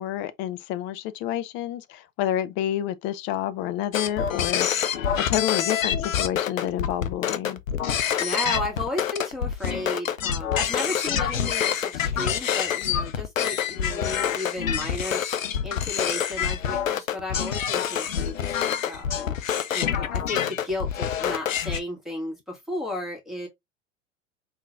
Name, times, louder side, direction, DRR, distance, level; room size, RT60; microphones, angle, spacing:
voice 1, 0.0-7.6, left 12 dB, 30° left, 0.4 m, -29 dB
sound 1, 3.9-21.8, left 9 dB, 85° left, 0.5 m, -26 dB
voice 2, 8.2-18.5 18.9-23.5, left 1 dB, ahead, 1.7 m, -34 dB
3.6 x 2.6 x 3.1 m
figure-of-eight pair, 85°, 38 cm